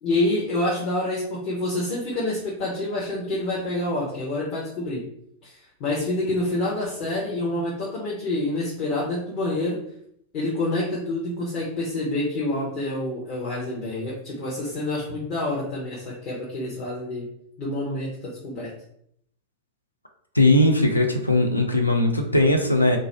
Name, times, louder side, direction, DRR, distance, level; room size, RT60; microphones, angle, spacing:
voice 1, 0.0-5.0 5.4-9.8 10.3-17.3 17.6-18.7, left 2 dB, 40° left, -7 dB, 0.8 m, -27 dB
voice 2, 20.3-23.0, left 1 dB, 85° left, 4 dB, 0.4 m, -19 dB
2.4 x 2.1 x 3.3 m, 0.70 s
figure-of-eight pair, 90°, 0 cm